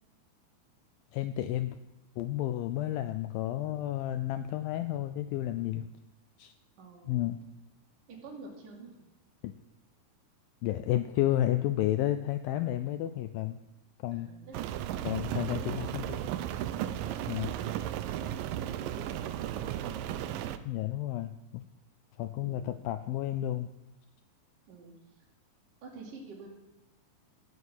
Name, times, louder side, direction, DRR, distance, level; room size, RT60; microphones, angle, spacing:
voice 1, 1.1-1.8 2.2-5.9 6.4-6.5 7.1-7.4 9.4-9.5 10.6-13.6 14.0-14.3 15.1-16.2 17.3-17.5 20.7-21.6 22.2-23.7, left 13 dB, 85° left, 10 dB, 2.1 m, -31 dB
voice 2, 6.8-7.3 8.1-8.9 14.1-14.5 14.9-16.4 16.9-17.1 17.9-20.0 22.4-22.7 24.7-24.9 25.8-26.5, right 4 dB, 55° right, -3 dB, 3.9 m, -49 dB
Rain, 14.5-20.6, right 11 dB, 80° right, 2.0 m, -35 dB
14.5 x 7.3 x 9.5 m, 0.95 s
omnidirectional pair, 4.7 m